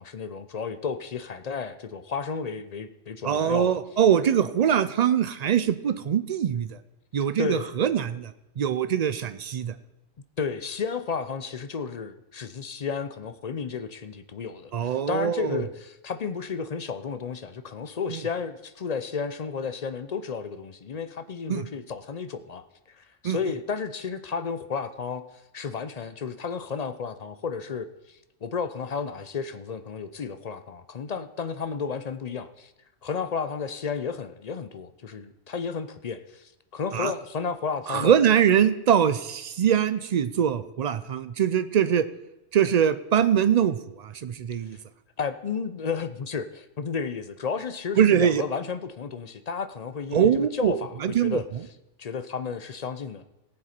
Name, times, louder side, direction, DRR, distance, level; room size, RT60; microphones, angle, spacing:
voice 1, 0.0-3.8 7.4-7.7 10.4-22.6 22.9-25.2 25.5-32.7 33.0-38.2 45.2-51.4 52.0-53.2, left 5 dB, 50° left, 11 dB, 0.5 m, -32 dB
voice 2, 3.2-6.8 7.1-9.7 14.7-15.6 18.1-18.2 21.5-21.7 23.2-23.4 36.9-37.1 37.9-42.0 42.5-44.8 48.0-48.4 50.1-51.4, right 9 dB, 75° right, 13 dB, 0.3 m, -23 dB
18.0 x 7.6 x 4.4 m, 0.88 s
omnidirectional pair, 1.3 m